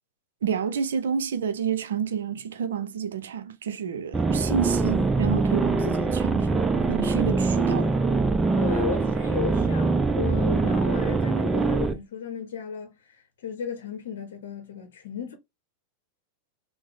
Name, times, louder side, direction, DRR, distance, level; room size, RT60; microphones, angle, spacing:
voice 1, 0.4-6.6 6.9-8.0, right 7 dB, 65° right, 0.6 m, -29 dB
sound 1, 4.1-11.9, right 3 dB, 15° right, 0.5 m, -23 dB
voice 2, 8.5-12.9 13.4-15.4, left 7 dB, 60° left, 0.8 m, -34 dB
4.7 x 2.1 x 3.8 m
figure-of-eight pair, 90°, 0 cm